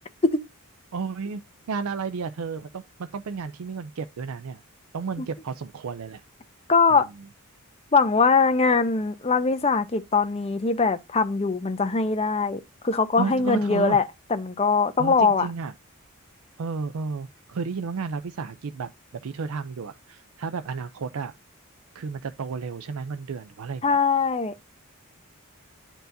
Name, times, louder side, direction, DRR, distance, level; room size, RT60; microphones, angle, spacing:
voice 1, 0.9-1.4 1.7-4.6 4.9-6.2 6.9-7.0 13.2-14.0 15.0-15.7 16.6-18.9 19.2-21.3 21.9-24.0, right 5 dB, 75° right, 0.4 m, -32 dB
voice 2, 6.7-7.1 7.9-15.5 23.8-24.5, left 4 dB, 30° left, 0.7 m, -22 dB
10.5 x 4.6 x 2.6 m
head